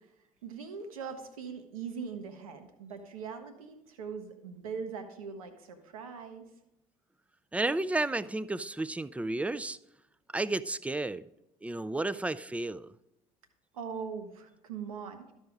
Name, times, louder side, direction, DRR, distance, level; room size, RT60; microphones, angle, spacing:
voice 1, 0.4-6.4 13.7-15.3, right 6 dB, 80° right, 1.0 m, -41 dB
voice 2, 7.5-9.8 10.3-11.3 11.6-12.9, right 2 dB, 5° right, 0.4 m, -32 dB
12.5 x 5.5 x 4.7 m
hypercardioid pair, 60°, 18 cm